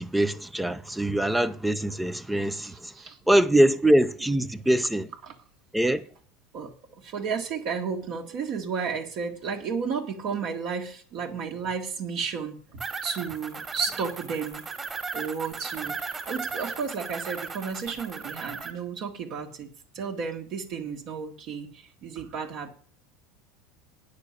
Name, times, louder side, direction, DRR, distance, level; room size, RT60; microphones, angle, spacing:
voice 1, 0.0-2.9 3.3-5.1 5.7-6.1, right 1 dB, 5° right, 0.6 m, -23 dB
voice 2, 2.6-3.2 5.3-5.4 6.5-14.6 15.1-22.7, right 6 dB, 50° right, 1.7 m, -33 dB
sound 1, 12.8-18.7, right 4 dB, 20° right, 1.9 m, -36 dB
9.5 x 6.7 x 8.0 m
supercardioid pair, 145°, 0 cm